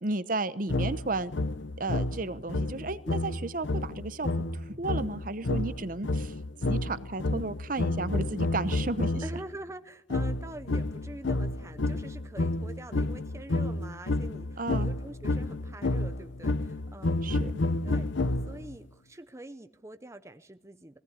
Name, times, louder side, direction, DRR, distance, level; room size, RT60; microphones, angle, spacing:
voice 1, 0.0-1.3 1.8-4.3 4.7-6.3 6.6-9.2 14.6-14.9 17.2-17.5, right 2 dB, 45° right, 14 dB, 0.9 m, -33 dB
sound 1, 0.7-9.4 10.1-18.8, left 2 dB, 75° left, 0.8 m, -30 dB
voice 2, 9.2-17.4 17.8-18.0 18.5-21.0, right 1 dB, 15° right, 9 dB, 0.7 m, -45 dB
20.5 x 17.5 x 9.7 m, 0.81 s
head